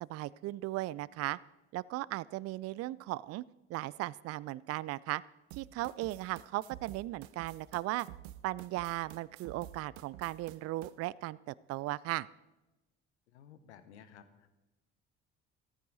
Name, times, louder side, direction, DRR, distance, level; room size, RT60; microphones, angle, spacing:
voice 1, 0.0-1.4 1.7-3.4 3.7-5.2 5.5-8.1 8.4-12.3, right 17 dB, 45° right, 21 dB, 0.4 m, -37 dB
sound 1, 5.5-10.9, right 14 dB, 70° right, 0.8 m, -50 dB
voice 2, 13.3-14.5, left 8 dB, 80° left, 11 dB, 1.1 m, -55 dB
14.5 x 14.0 x 4.0 m, 1.0 s
hypercardioid pair, 55°, 34 cm